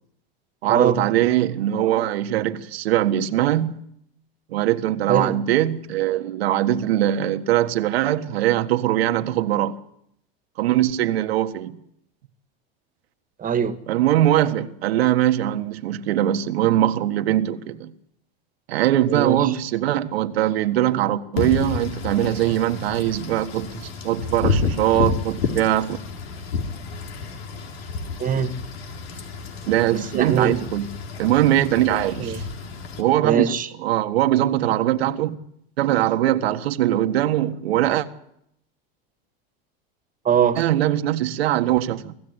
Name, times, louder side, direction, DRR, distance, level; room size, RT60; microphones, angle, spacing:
voice 1, 0.6-3.8 4.5-9.8 10.6-11.8 13.9-17.9 18.7-26.0 29.7-30.9 31.2-32.4 33.0-35.4 35.8-38.1 40.6-42.1, right 13 dB, 85° right, 1.6 m, -21 dB
voice 2, 13.4-13.8 19.1-19.6 28.2-28.5 29.9-30.5 31.9-32.4 33.2-33.7 40.3-40.6, right 8 dB, 25° right, 1.8 m, -22 dB
Wind / Rain, 21.4-33.0, left 4 dB, 85° left, 3.9 m, -30 dB
25.0 x 15.0 x 9.8 m
supercardioid pair, 115°, 30 cm